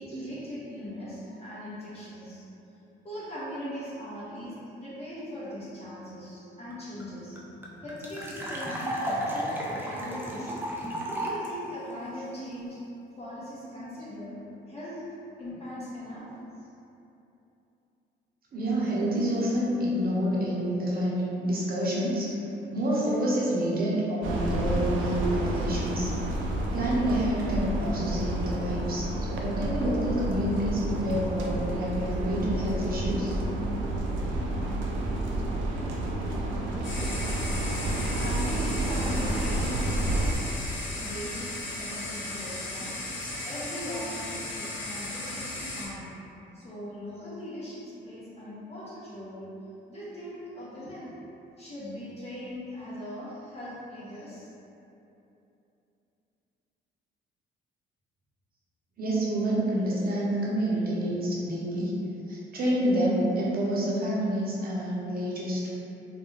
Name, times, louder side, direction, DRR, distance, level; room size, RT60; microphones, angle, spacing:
voice 1, 0.0-7.4 7.8-10.5 11.2-12.8 13.2-15.1 15.4-16.3 16.6-16.7 37.9-39.8 40.9-46.1 46.5-51.1 51.6-54.5, equal, 30° left, -10 dB, 0.7 m, -40 dB
sound 1, 6.7-6.8 7.0-7.1 7.4-11.5, equal, 10° right, 0.4 m, -33 dB
voice 2, 18.5-22.3 22.7-26.1 26.7-33.4 59.0-62.0 62.3-65.7, equal, 50° right, -6 dB, 0.7 m, -28 dB
sound 2, 24.2-40.3, right 1 dB, 75° right, 0.4 m, -30 dB
sound 3, 36.8-45.9, left 2 dB, 75° left, 0.7 m, -36 dB
2.4 x 2.2 x 3.1 m, 2.9 s
cardioid pair, 90°, 20 cm